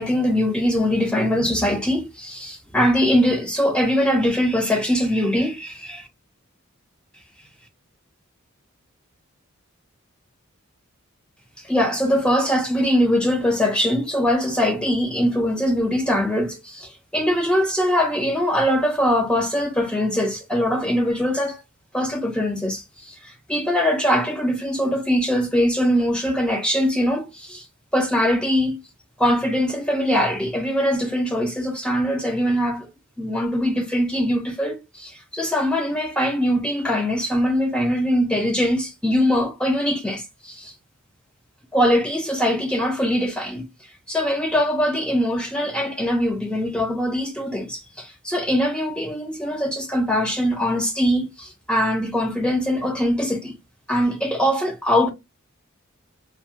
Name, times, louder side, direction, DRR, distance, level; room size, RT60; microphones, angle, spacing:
voice 1, 0.0-6.0 11.6-21.6 21.9-27.6 27.9-28.8 29.2-32.9 33.2-40.7 41.7-43.7 44.1-53.5 53.9-55.1, equal, 5° left, 0.6 m, -22 dB
2.9 x 2.3 x 2.7 m
head